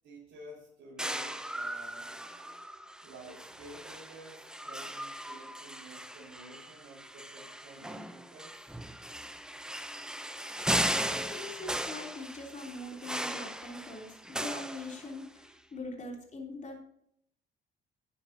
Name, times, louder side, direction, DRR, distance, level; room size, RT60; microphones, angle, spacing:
voice 1, 0.0-2.6 2.9-8.8, right 1 dB, 80° right, -7 dB, 3.8 m, -52 dB
sound 1, 1.0-15.5, right 1 dB, 5° right, 0.7 m, -37 dB
voice 2, 11.0-16.8, left 2 dB, 40° left, 0 dB, 3.4 m, -42 dB
11.0 x 9.8 x 2.8 m, 0.71 s
cardioid pair, 90°, 20 cm